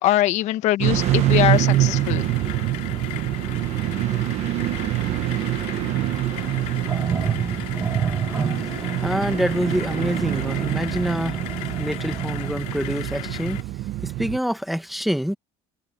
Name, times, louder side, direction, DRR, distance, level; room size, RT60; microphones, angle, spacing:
voice 1, 0.0-2.2, left 14 dB, 65° left, 1.4 m, -22 dB
sound 1, 0.8-14.4, right 15 dB, 60° right, 1.0 m, -25 dB
sound 2, 1.0-13.6, left 18 dB, 90° left, 3.0 m, -37 dB
sound 3, 6.4-12.5, right 6 dB, 20° right, 1.6 m, -30 dB
voice 2, 9.0-11.4 11.8-13.6 14.0-15.4, equal, ahead, 1.2 m, -26 dB
cardioid pair, 160°, 13 cm